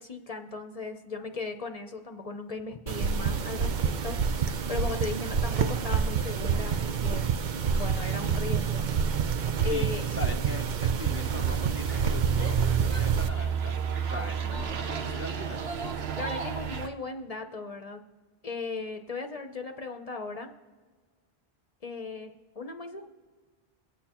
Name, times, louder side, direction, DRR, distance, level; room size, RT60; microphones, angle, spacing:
voice 1, 0.0-7.2 7.7-8.9 9.6-10.0 16.2-18.0 18.4-20.5 21.8-23.1, left 4 dB, 40° left, 6 dB, 0.7 m, -37 dB
sound 1, 2.9-13.3, right 6 dB, 55° right, 0.7 m, -28 dB
voice 2, 9.7-13.8 14.1-15.6, left 1 dB, 15° right, 3 dB, 0.5 m, -40 dB
sound 2, 11.0-16.9, right 7 dB, 85° right, 1.0 m, -32 dB
Female speech woman speaking / Yell, 12.3-13.6 14.1-16.7, right 2 dB, 40° right, 1.0 m, -41 dB
23.0 x 8.8 x 2.9 m, 1.5 s
omnidirectional pair, 1.0 m